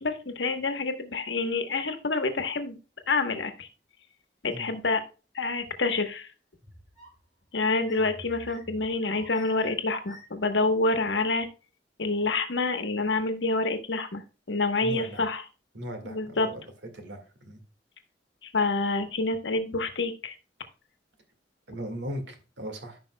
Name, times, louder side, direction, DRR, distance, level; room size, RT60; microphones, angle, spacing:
voice 1, 0.0-2.8 3.1-3.7 4.4-5.0 5.3-6.3 7.5-11.5 12.0-14.2 14.5-15.4 16.0-16.5 18.4-20.3, left 3 dB, 85° left, 7 dB, 1.1 m, -27 dB
sound 1, 6.6-7.3 7.8-10.5, equal, 20° right, 4.6 m, -49 dB
voice 2, 14.8-15.2 15.7-16.6 16.9-17.6 21.7-23.0, equal, 90° right, 6 dB, 1.8 m, -38 dB
14.0 x 5.4 x 2.2 m, 0.33 s
head